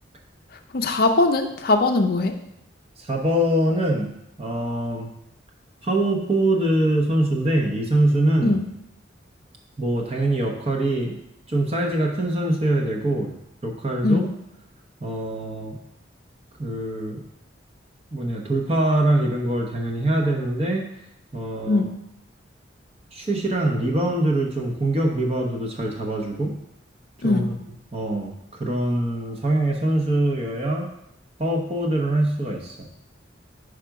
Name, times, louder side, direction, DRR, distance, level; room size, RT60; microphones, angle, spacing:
voice 1, 0.7-2.3 8.4-8.6 14.0-14.3 21.7-21.9 27.2-27.5, left 2 dB, 50° left, 5 dB, 0.5 m, -20 dB
voice 2, 3.0-4.1 4.4-5.1 5.8-8.6 9.8-11.2 11.5-13.3 13.6-14.2 15.0-15.8 16.6-17.2 18.1-20.9 21.3-21.8 23.1-26.5 27.2-27.4 27.9-30.9 31.4-32.8, right 1 dB, 30° right, 1 dB, 0.8 m, -23 dB
5.0 x 5.0 x 4.6 m, 0.79 s
head